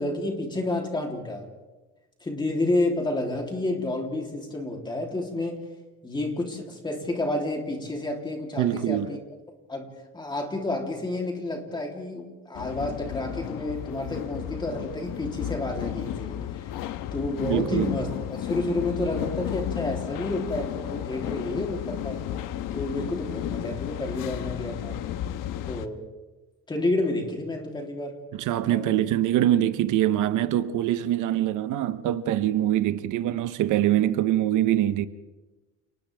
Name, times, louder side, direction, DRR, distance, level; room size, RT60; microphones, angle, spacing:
voice 1, 0.0-1.5 2.2-5.6 6.0-9.2 9.7-16.7 17.1-22.3 22.7-25.0 25.7-26.0 26.7-28.2 28.6-28.9, left 2 dB, 15° left, 3.2 m, -30 dB
voice 2, 8.6-9.1 17.5-17.9 28.3-35.1, right 12 dB, 70° right, 1.0 m, -24 dB
sound 1, 12.5-25.9, left 11 dB, 85° left, 1.2 m, -33 dB
30.0 x 29.5 x 3.5 m
cardioid pair, 175°, 31 cm